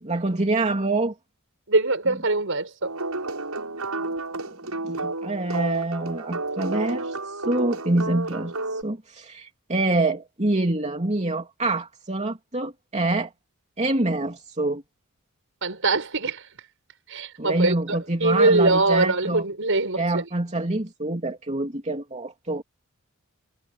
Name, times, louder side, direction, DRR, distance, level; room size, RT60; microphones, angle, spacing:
voice 1, 0.0-1.1 4.8-13.3 13.8-14.8 17.4-19.4 20.0-22.6, right 2 dB, 30° right, 3.0 m, -26 dB
voice 2, 1.7-2.9 15.6-16.5 17.1-20.3, right 2 dB, 60° right, 7.2 m, -23 dB
sound 1, 2.8-8.8, right 2 dB, 85° right, 7.5 m, -31 dB
head